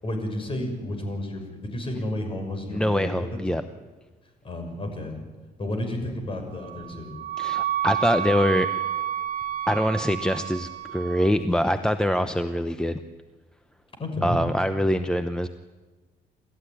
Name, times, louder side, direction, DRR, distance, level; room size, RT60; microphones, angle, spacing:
voice 1, 0.0-3.3 4.4-5.2 5.6-7.1 14.0-14.4, left 1 dB, 30° left, 5 dB, 6.3 m, -31 dB
voice 2, 2.7-3.6 7.4-8.7 9.7-13.0 14.2-15.5, equal, 5° left, 9 dB, 0.8 m, -24 dB
Wind instrument woodwind instrument, 6.6-11.4, right 11 dB, 65° right, 2.9 m, -30 dB
28.0 x 14.5 x 9.8 m, 1.3 s
cardioid pair, 110°, 17 cm